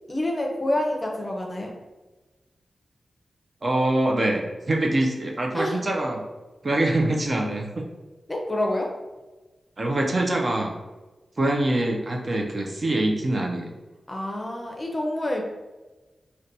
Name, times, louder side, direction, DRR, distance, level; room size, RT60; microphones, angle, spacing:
voice 1, 0.1-1.7 5.5-5.8 8.3-8.9 14.1-15.4, left 1 dB, 25° left, 1 dB, 0.6 m, -27 dB
voice 2, 3.6-6.2 6.6-7.9 9.8-10.7 11.4-13.7, right 1 dB, 40° right, 1 dB, 0.4 m, -24 dB
4.0 x 2.2 x 2.6 m, 1.2 s
wide cardioid pair, 80°, 0 cm